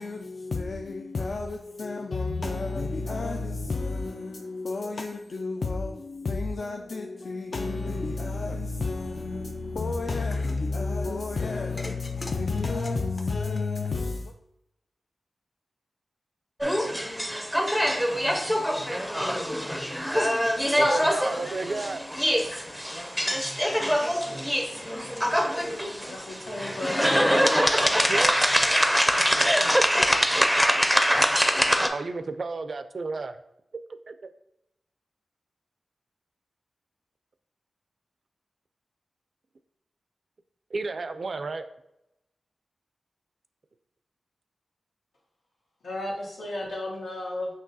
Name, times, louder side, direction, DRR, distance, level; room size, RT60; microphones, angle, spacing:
voice 1, 0.0-14.3, left 3 dB, 60° left, 0.3 m, -31 dB
sound 1, 10.1-10.6 11.8-14.3, left 1 dB, 45° left, 0.7 m, -43 dB
sound 2, 16.6-31.9, equal, ahead, 0.5 m, -24 dB
voice 2, 20.8-22.1 28.1-28.4 30.6-30.8 31.9-33.4 34.1-34.2 40.7-41.6, right 3 dB, 60° right, 0.3 m, -32 dB
voice 3, 25.9-27.2 45.8-47.5, left 1 dB, 85° left, 1.5 m, -34 dB
5.9 x 2.7 x 2.7 m
cardioid pair, 65°, 0 cm